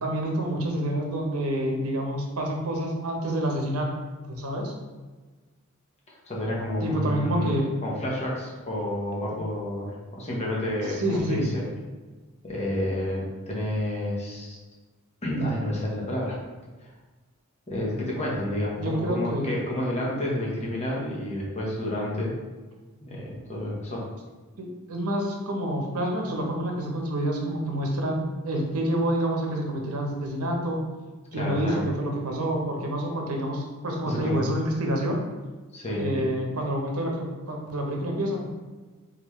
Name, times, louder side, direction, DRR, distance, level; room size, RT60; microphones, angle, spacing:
voice 1, 0.0-3.9 4.3-4.7 6.8-7.7 10.9-11.5 18.8-19.5 24.6-30.8 31.3-35.2 35.9-38.5, right 1 dB, 90° right, 1 dB, 0.9 m, -28 dB
voice 2, 6.1-7.6 7.8-11.6 12.4-14.6 15.2-16.4 16.8-16.9 17.7-22.3 23.0-24.0 31.3-31.8 34.1-34.4 35.7-36.3, left 1 dB, 30° left, -4 dB, 0.9 m, -30 dB
4.0 x 3.7 x 3.1 m, 1.3 s
head